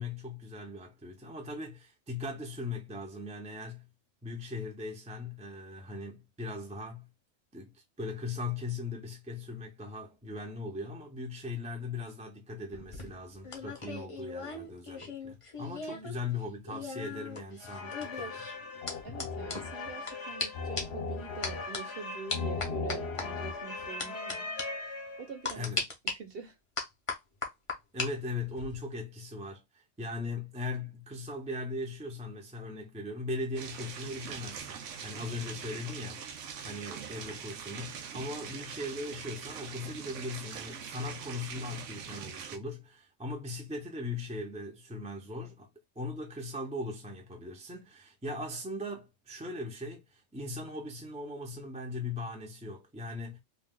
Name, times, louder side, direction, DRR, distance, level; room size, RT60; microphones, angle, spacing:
voice 1, 0.0-3.9 4.2-7.1 7.5-18.4 25.5-25.8 27.9-36.2 36.6-45.7 46.0-53.4, left 2 dB, 10° right, 0.5 m, -39 dB
sound 1, 12.7-16.1 16.4-20.1 20.4-20.5 20.8-21.0 21.4-21.8 22.3-23.3 24.0-24.3 24.6-24.7 25.4-26.1 26.8-28.1 28.4-28.8, left 4 dB, 35° left, 0.6 m, -37 dB
sound 2, 17.6-25.5, left 3 dB, 60° left, 0.9 m, -38 dB
voice 2, 19.0-24.4 25.2-25.7 26.2-26.5 35.3-35.4, right 5 dB, 55° right, 1.0 m, -45 dB
sound 3, 33.6-42.6, right 7 dB, 80° right, 0.9 m, -43 dB
2.6 x 2.3 x 3.5 m
omnidirectional pair, 1.3 m